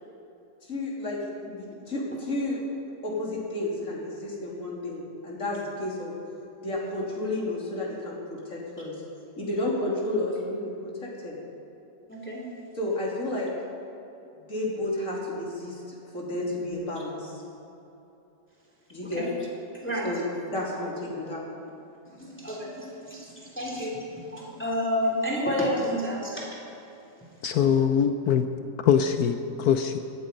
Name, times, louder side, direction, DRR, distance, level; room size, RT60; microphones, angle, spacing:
voice 1, 0.6-2.6 3.0-6.1 6.6-9.0 9.4-11.4 12.8-13.5 14.5-17.4 18.9-19.3 20.0-21.4, left 1 dB, 45° left, -4 dB, 3.3 m, -31 dB
voice 2, 12.1-12.4 19.1-19.3 19.7-20.1 22.1-24.0 24.3-26.5, equal, 5° left, -3 dB, 2.7 m, -30 dB
voice 3, 27.4-28.5 28.8-30.0, left 8 dB, 70° left, 8 dB, 1.0 m, -22 dB
17.5 x 13.0 x 5.3 m, 2.9 s
omnidirectional pair, 2.0 m